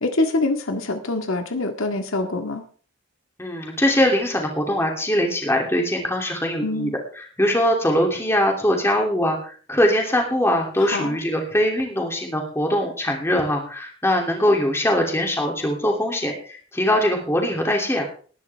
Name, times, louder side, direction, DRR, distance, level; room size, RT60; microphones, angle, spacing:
voice 1, 0.0-2.6 6.6-6.9 10.8-11.2, left 2 dB, 80° left, 5 dB, 1.9 m, -25 dB
voice 2, 3.4-6.9 7.2-18.1, left 1 dB, 10° left, 1 dB, 2.9 m, -22 dB
19.5 x 11.0 x 3.5 m, 0.43 s
head